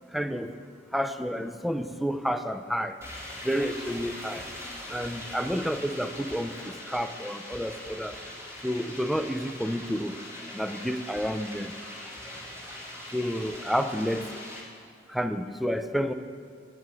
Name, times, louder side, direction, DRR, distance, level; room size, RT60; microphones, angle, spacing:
voice 1, 0.1-0.5 0.9-2.9 3.4-4.5 4.9-8.2 8.6-10.2 10.5-11.7 13.1-14.3 15.1-16.1, equal, ahead, 8 dB, 0.4 m, -30 dB
sound 1, 3.0-14.6, left 1 dB, 15° right, 2.2 m, -41 dB
9.1 x 7.9 x 8.3 m, 2.1 s
head